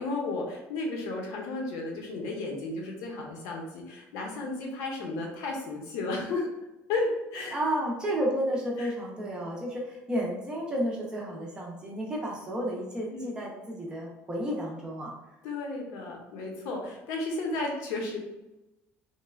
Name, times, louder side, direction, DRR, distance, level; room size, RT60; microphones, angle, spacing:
voice 1, 0.0-6.5 6.9-7.6 8.8-8.9 13.1-13.3 15.4-18.2, left 2 dB, 80° left, 0 dB, 0.7 m, -33 dB
voice 2, 7.5-15.1, equal, 15° right, -3 dB, 0.4 m, -32 dB
3.1 x 2.0 x 2.3 m, 0.98 s
cardioid pair, 165°, 5 cm